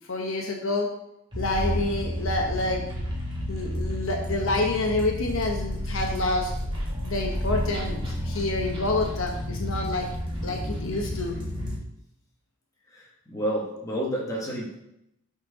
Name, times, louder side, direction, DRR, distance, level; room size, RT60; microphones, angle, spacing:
voice 1, 0.1-0.9 1.4-2.8 3.5-6.5 7.0-10.1 10.4-11.3, left 2 dB, 70° left, 1 dB, 1.0 m, -28 dB
sound 1, 1.3-11.8, left 1 dB, 20° right, 1.7 m, -31 dB
voice 2, 12.9-14.8, right 1 dB, 15° left, -4 dB, 1.6 m, -30 dB
6.0 x 4.4 x 4.9 m, 0.81 s
head